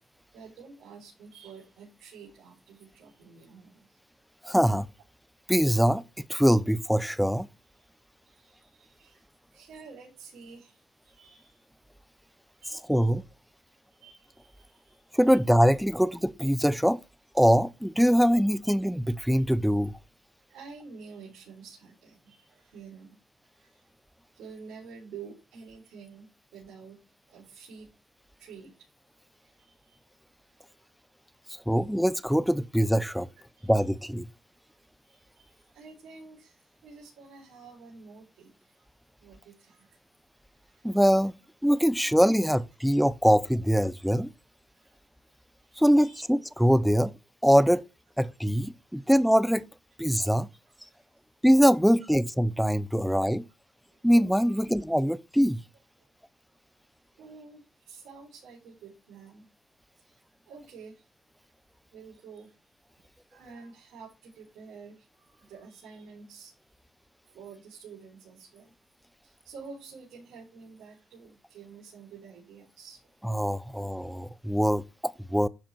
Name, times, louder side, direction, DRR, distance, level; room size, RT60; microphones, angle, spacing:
voice 1, 0.3-4.0 8.2-9.2 9.5-11.6 12.6-13.1 13.6-15.4 19.3-19.4 20.5-23.2 23.5-23.9 24.3-27.0 27.3-27.9 28.4-28.9 29.4-30.0 31.3-31.8 33.5-33.7 35.0-38.8 39.2-40.0 40.6-40.9 44.7-44.9 45.6-46.2 48.9-49.1 50.9-51.1 54.4-54.6 56.0-56.1 57.2-59.5 60.0-60.2 60.5-61.1 61.9-62.5 63.0-66.5 67.3-68.7 69.2-73.1, right 5 dB, 80° right, 4.3 m, -49 dB
voice 2, 4.4-4.9 5.5-6.0 6.3-7.5 12.9-13.2 15.1-17.0 17.3-20.0 31.7-33.3 33.6-34.3 40.8-41.3 41.6-44.3 45.8-47.1 47.4-47.8 48.2-49.6 50.0-50.5 51.4-53.4 54.0-55.6 73.2-75.5, equal, ahead, 0.7 m, -23 dB
11.5 x 4.9 x 4.4 m
supercardioid pair, 75°, 0 cm